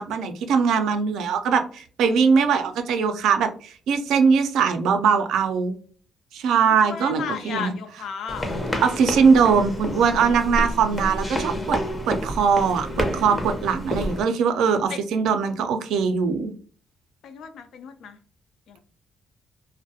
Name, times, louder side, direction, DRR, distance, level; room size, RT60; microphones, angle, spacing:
voice 1, 0.0-5.8 6.3-7.7 8.8-11.8 12.1-16.5, right 6 dB, 85° right, 7 dB, 0.3 m, -21 dB
voice 2, 6.8-8.5 14.9-15.0 17.2-18.2 18.7-18.8, left 7 dB, 75° left, 8 dB, 0.3 m, -34 dB
sound 1, 8.3-14.2, left 1 dB, 20° left, 0.5 m, -29 dB
2.3 x 2.0 x 2.6 m, 0.43 s
cardioid pair, 90°, 0 cm